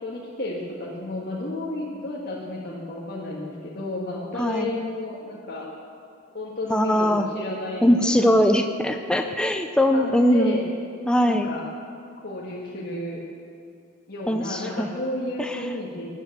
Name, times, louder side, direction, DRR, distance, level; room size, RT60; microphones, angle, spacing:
voice 1, 0.0-5.6 6.3-8.4 9.9-10.6 11.2-11.7 12.2-13.2 14.1-16.1, left 2 dB, 45° left, -5 dB, 1.7 m, -32 dB
voice 2, 4.4-4.8 6.7-7.3 7.8-10.6 11.1-11.5 14.3-14.9 15.4-15.6, equal, 5° left, 5 dB, 0.5 m, -21 dB
13.5 x 9.3 x 8.0 m, 2.3 s
head